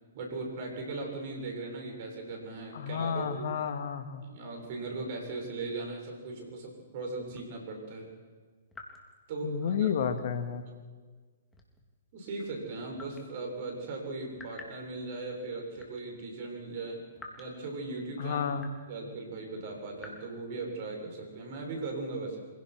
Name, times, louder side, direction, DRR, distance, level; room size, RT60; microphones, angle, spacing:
voice 1, 0.1-3.5 4.2-8.1 9.3-9.9 12.1-17.0 17.4-18.4 18.9-22.4, right 3 dB, 50° right, 2 dB, 7.3 m, -38 dB
voice 2, 2.7-4.2 9.4-10.6 18.2-18.7, left 7 dB, 60° left, 8 dB, 2.2 m, -31 dB
sound 1, 7.3-7.5 8.7-9.1 10.1-10.5 11.5-11.9 12.9-13.3 14.3-14.8 15.7-16.0 17.2-17.5 18.6-18.9 20.0-20.1, left 3 dB, 10° left, 3.5 m, -49 dB
26.0 x 17.0 x 6.3 m, 1.5 s
hypercardioid pair, 120°, 0 cm